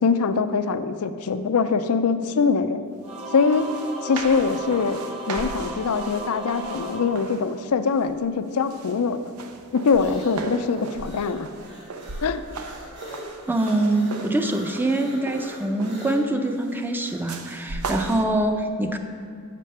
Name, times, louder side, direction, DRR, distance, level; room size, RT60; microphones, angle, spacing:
voice 1, 0.0-2.9 3.3-3.7 4.0-5.0 5.3-9.3 9.7-11.5 12.2-12.4, left 5 dB, 80° left, 11 dB, 0.5 m, -23 dB
Singing / Musical instrument, 3.0-7.9, right 1 dB, 25° right, 1.2 m, -36 dB
sound 1, 3.2-3.3 3.5-7.6 8.0-8.4 8.7-16.2 17.3-18.2, right 3 dB, 75° right, 0.6 m, -37 dB
sound 2, 9.1-17.3, equal, 50° right, 2.5 m, -42 dB
voice 2, 13.5-19.0, right 1 dB, 10° right, 5 dB, 0.5 m, -24 dB
7.5 x 7.4 x 5.5 m, 2.2 s
head